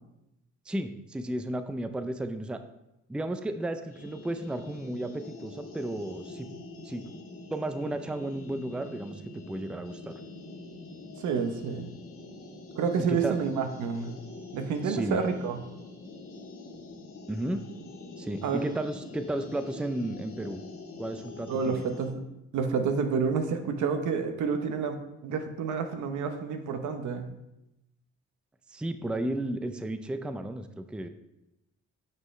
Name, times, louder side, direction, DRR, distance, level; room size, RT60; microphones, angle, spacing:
voice 1, 0.7-2.6 3.1-6.5 6.8-7.0 7.5-10.2 13.0-13.3 14.8-15.2 17.3-17.6 18.2-20.6 21.0-21.8 28.7-31.1, right 1 dB, 5° right, 9 dB, 0.4 m, -33 dB
sound 1, 3.9-22.1, left 2 dB, 50° left, 1.8 m, -45 dB
voice 2, 11.2-11.9 12.8-14.1 14.5-15.6 18.4-18.7 21.5-22.2 22.5-27.3, right 5 dB, 75° right, 7 dB, 0.9 m, -29 dB
9.2 x 5.5 x 3.2 m, 0.89 s
cardioid pair, 90°, 30 cm